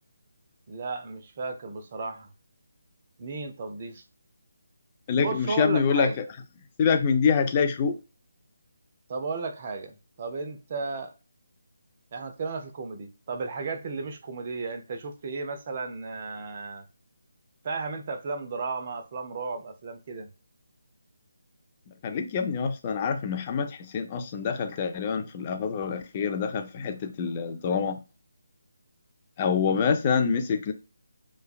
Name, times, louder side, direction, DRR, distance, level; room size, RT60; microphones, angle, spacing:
voice 1, 0.7-2.3 3.2-4.0 5.2-6.2 9.1-9.9 10.2-11.2 12.1-16.8 17.6-20.3 29.7-29.8, right 4 dB, 35° right, 0.5 m, -34 dB
voice 2, 5.1-6.1 6.8-8.0 22.0-28.0 29.4-30.7, left 6 dB, 25° left, 0.5 m, -26 dB
3.2 x 2.2 x 2.4 m
figure-of-eight pair, 150°, 0 cm